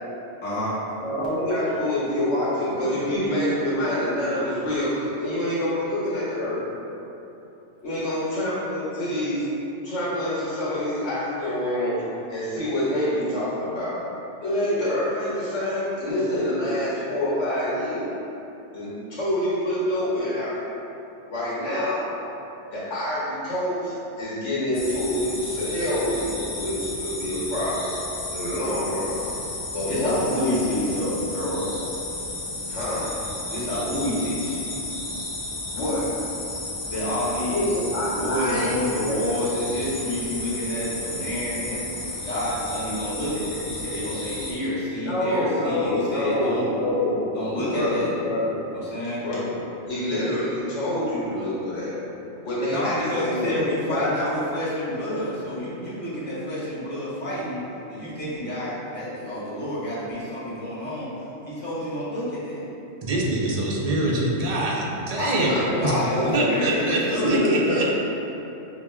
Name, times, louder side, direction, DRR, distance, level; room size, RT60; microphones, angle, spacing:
voice 1, 0.4-0.7 29.9-31.7 33.5-34.6 36.9-37.7 38.1-46.7 47.3-48.1 48.7-49.2 52.7-57.6 57.9-61.1 61.5-62.6 65.2-67.4, left 1 dB, 10° left, -10 dB, 0.8 m, -29 dB
voice 2, 1.0-6.6 7.8-9.4 9.8-12.0 12.3-14.0 14.4-18.0 18.7-20.6 21.3-22.1 22.7-27.9 28.3-29.2 29.7-30.6 32.7-33.1 35.7-36.1 37.5-38.7 39.0-39.2 45.0-47.3 47.7-48.6 49.2-51.9 52.4-54.1 65.2-66.5 67.1-67.8, left 1 dB, 90° left, -9 dB, 1.3 m, -26 dB
sound 1, 24.7-44.5, left 2 dB, 50° left, 0.9 m, -33 dB
voice 3, 63.0-65.5 65.8-65.9 66.3-67.9, right 2 dB, 55° right, -3 dB, 0.4 m, -24 dB
5.5 x 2.3 x 2.2 m, 2.9 s
omnidirectional pair, 1.2 m